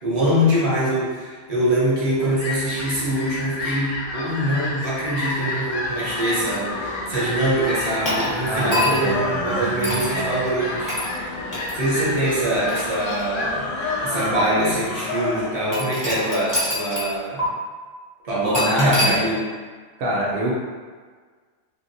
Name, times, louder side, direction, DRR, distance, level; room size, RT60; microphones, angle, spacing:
voice 1, 0.0-11.0 11.7-17.5 18.2-19.5, right 1 dB, 40° right, -7 dB, 0.6 m, -23 dB
Fowl, 1.8-15.7, left 2 dB, 60° left, 0.7 m, -31 dB
sound 1, 5.7-15.6, left 3 dB, 80° left, 1.0 m, -31 dB
sound 2, 8.0-9.2 9.8-10.1 10.9-11.1 11.5-11.7 12.4-13.6 14.3-14.4 15.7-17.1 17.4-17.5 18.5-19.1, left 1 dB, 20° left, 0.5 m, -25 dB
voice 2, 8.5-10.4 18.8-19.2 20.0-20.5, right 1 dB, 70° right, -4 dB, 1.0 m, -26 dB
2.8 x 2.6 x 2.6 m, 1.5 s
omnidirectional pair, 1.4 m